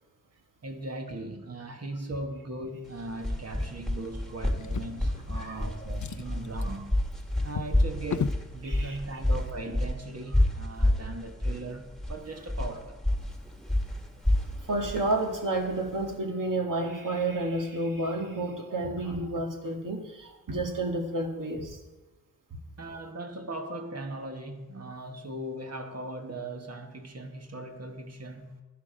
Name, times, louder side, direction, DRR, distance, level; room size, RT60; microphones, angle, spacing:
voice 1, 0.6-6.9 7.4-13.0 22.8-28.6, right 2 dB, 45° right, 1.5 m, -39 dB
sound 1, 2.9-16.1, left 1 dB, ahead, 1.6 m, -29 dB
Drawer open or close, 4.6-5.6 5.9-8.5 9.4-9.5 9.9-10.0, left 7 dB, 55° left, 0.6 m, -36 dB
voice 2, 8.6-9.0 14.7-20.0 20.5-21.6, right 2 dB, 65° right, 1.9 m, -30 dB
12.0 x 11.0 x 5.1 m
wide cardioid pair, 75°, 35 cm